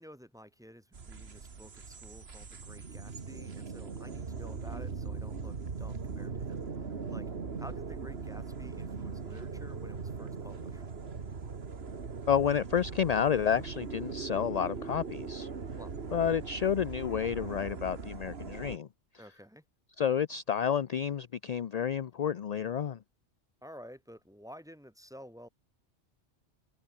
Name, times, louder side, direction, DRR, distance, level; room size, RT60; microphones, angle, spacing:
voice 1, 0.0-7.3 7.6-10.8 15.7-15.9 19.2-19.6 23.6-25.5, equal, 5° right, 2.0 m, -51 dB
sound 1, 0.9-18.8, right 5 dB, 55° right, 1.9 m, -40 dB
voice 2, 12.3-15.5 16.1-18.9 20.0-23.0, left 8 dB, 50° left, 0.5 m, -30 dB
omnidirectional pair, 1.2 m